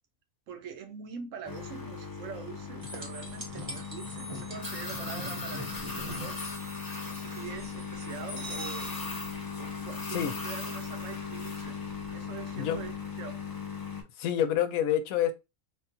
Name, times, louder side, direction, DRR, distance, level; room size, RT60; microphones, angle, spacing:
voice 1, 0.5-6.4 7.1-8.9 9.6-11.8 12.1-13.4, right 7 dB, 70° right, 0.9 m, -44 dB
sound 1, 1.5-14.0, left 5 dB, 35° left, 0.3 m, -38 dB
sound 2, 2.8-8.5 11.4-11.5, equal, 25° right, 0.8 m, -43 dB
sound 3, 8.4-9.9, right 2 dB, 85° right, 1.2 m, -44 dB
voice 2, 14.2-15.3, left 10 dB, 90° left, 1.0 m, -27 dB
3.5 x 2.2 x 2.7 m
omnidirectional pair, 1.5 m